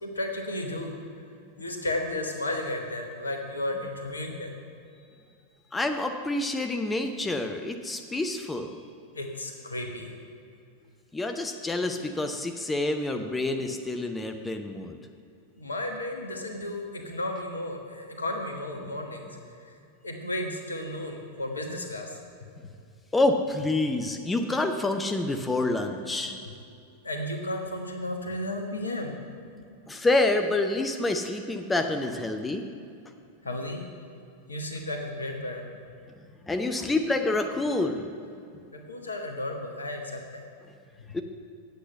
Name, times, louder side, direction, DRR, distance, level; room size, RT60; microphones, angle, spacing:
voice 1, 0.0-0.9 1.6-4.5 9.1-10.1 15.6-19.7 20.0-22.2 27.0-29.2 33.4-33.8 34.5-35.7 38.7-40.5 41.1-41.2, left 1 dB, 75° left, 4 dB, 1.1 m, -33 dB
voice 2, 5.7-8.7 11.1-15.0 18.8-18.9 23.1-26.4 29.9-32.6 36.5-38.1 41.1-41.2, left 2 dB, 10° left, 6 dB, 0.6 m, -27 dB
8.3 x 8.0 x 5.7 m, 2.5 s
figure-of-eight pair, 90°, 0 cm